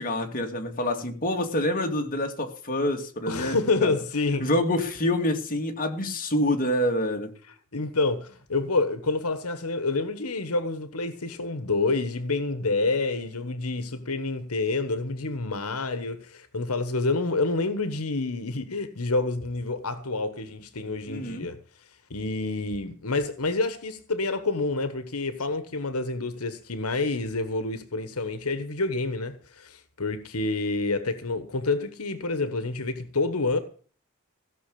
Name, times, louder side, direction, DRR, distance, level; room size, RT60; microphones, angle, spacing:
voice 1, 0.0-4.0 4.4-7.3 21.1-21.5, left 1 dB, 40° left, 2.4 m, -27 dB
voice 2, 3.3-4.5 7.7-21.6 22.1-33.6, left 3 dB, 80° left, 1.4 m, -28 dB
16.5 x 6.4 x 8.5 m
head